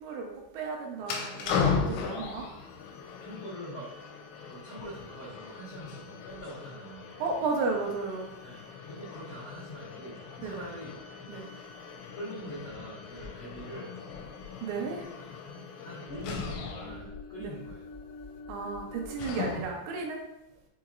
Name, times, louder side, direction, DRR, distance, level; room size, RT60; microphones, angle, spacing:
voice 1, 0.0-2.5 7.2-8.4 10.4-10.7 11.3-11.4 14.6-15.1 17.4-17.5 18.5-20.2, right 4 dB, 85° right, 1 dB, 3.0 m, -34 dB
sound 1, 1.0-19.9, left 5 dB, 85° left, 2.8 m, -38 dB
voice 2, 3.1-7.1 8.4-8.6 8.8-11.0 12.1-13.9 15.4-17.9 19.5-19.7, equal, 70° left, -11 dB, 1.2 m, -43 dB
6.9 x 2.9 x 2.5 m, 0.88 s
omnidirectional pair, 5.2 m